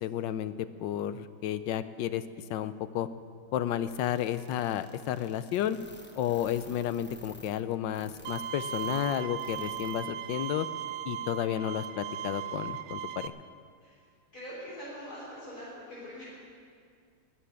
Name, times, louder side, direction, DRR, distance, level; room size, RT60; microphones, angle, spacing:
voice 1, 0.0-0.5 0.8-2.2 2.5-3.1 3.5-5.8 6.2-10.7 11.0-13.3, left 11 dB, 75° left, 13 dB, 1.2 m, -32 dB
sound 1, 3.9-10.0 10.3-10.4 10.9-11.0, equal, 10° left, 0.6 m, -51 dB
Bowed string instrument, 8.3-13.3, right 9 dB, 90° right, 1.5 m, -37 dB
voice 2, 14.3-16.2, equal, 50° left, -9 dB, 4.1 m, -43 dB
13.0 x 9.2 x 9.8 m, 2.2 s
omnidirectional pair, 2.2 m